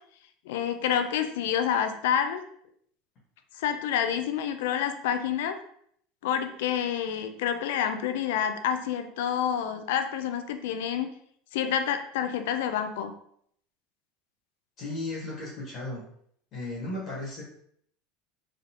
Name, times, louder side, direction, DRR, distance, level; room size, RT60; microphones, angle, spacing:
voice 1, 0.5-2.4 3.5-5.6 6.2-11.1 11.5-13.1, left 9 dB, 80° left, 8 dB, 0.5 m, -28 dB
voice 2, 14.8-16.0 16.5-17.4, left 2 dB, 35° left, -5 dB, 1.4 m, -35 dB
3.6 x 3.6 x 2.9 m, 0.66 s
supercardioid pair, 165°, 0 cm